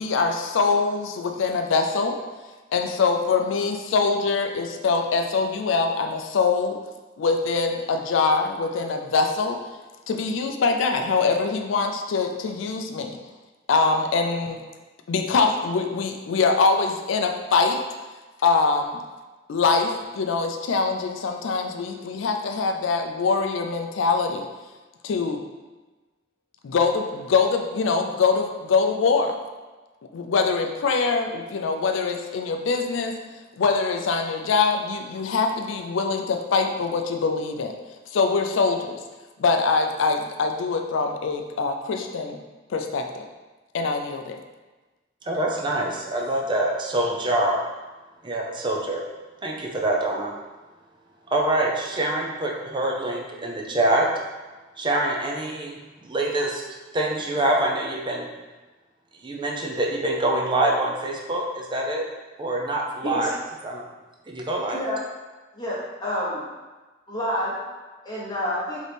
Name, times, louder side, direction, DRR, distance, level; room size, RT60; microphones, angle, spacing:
voice 1, 0.0-2.2 2.7-6.8 7.2-9.6 10.1-13.2 13.7-14.6 15.1-17.8 18.4-19.0 19.5-24.5 25.0-25.4 26.6-29.4 30.1-33.2 33.6-37.7 38.1-39.0 39.4-42.4 42.7-43.3 43.7-44.4, left 4 dB, 85° left, 4 dB, 0.4 m, -23 dB
voice 2, 45.3-47.6 48.2-49.0 49.4-50.3 51.3-54.1 54.8-56.6 56.9-58.3 59.2-62.0 62.4-63.3 63.6-63.9 64.3-64.8, right 1 dB, 25° right, -1 dB, 0.5 m, -25 dB
voice 3, 65.5-66.4 67.1-67.5 68.0-68.8, left 1 dB, 20° left, -7 dB, 0.9 m, -28 dB
4.0 x 3.0 x 3.4 m, 1.2 s
head